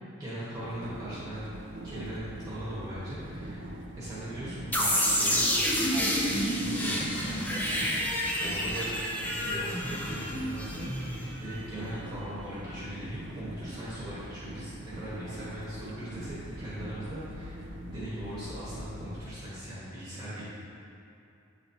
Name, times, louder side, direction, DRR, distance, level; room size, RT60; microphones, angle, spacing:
voice 1, 0.2-1.5 1.8-17.6 17.9-20.4, right 1 dB, 20° right, -11 dB, 1.2 m, -40 dB
sound 1, 0.5-19.2, right 1 dB, 65° right, 0.5 m, -43 dB
sound 2, 4.7-11.5, equal, 10° left, 0.5 m, -29 dB
8.2 x 4.2 x 2.7 m, 2.7 s
head